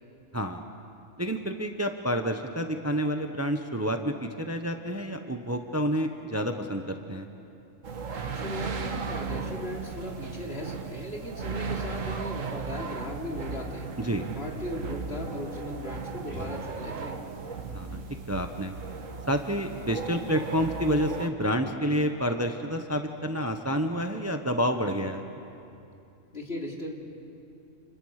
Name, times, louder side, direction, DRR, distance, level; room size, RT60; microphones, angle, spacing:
voice 1, 1.2-7.3 14.0-14.2 17.7-18.0 18.3-18.7 19.3-25.3, equal, 15° right, 5 dB, 1.0 m, -29 dB
sound 1, 7.8-21.3, right 5 dB, 85° right, 1.7 m, -36 dB
voice 2, 8.3-13.9 14.3-17.2 26.3-27.0, left 1 dB, 50° left, -1 dB, 3.3 m, -37 dB
sound 2, 16.3-17.3, equal, 10° left, 4.7 m, -43 dB
30.0 x 28.5 x 6.6 m, 2.7 s
omnidirectional pair, 1.3 m